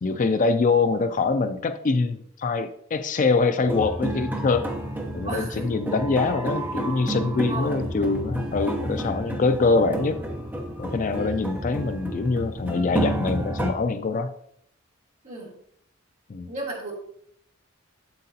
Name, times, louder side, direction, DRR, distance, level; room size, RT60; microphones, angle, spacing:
voice 1, 0.0-4.7 5.1-10.2 10.8-14.3 16.3-16.5, left 4 dB, 40° left, 9 dB, 0.4 m, -24 dB
sound 1, 3.6-13.7, right 1 dB, 10° right, 0.9 m, -30 dB
voice 2, 5.2-5.7 7.5-7.8 11.1-11.5 15.2-15.5 16.4-16.9, right 2 dB, 35° right, -4 dB, 2.8 m, -34 dB
7.7 x 7.4 x 2.8 m, 0.68 s
head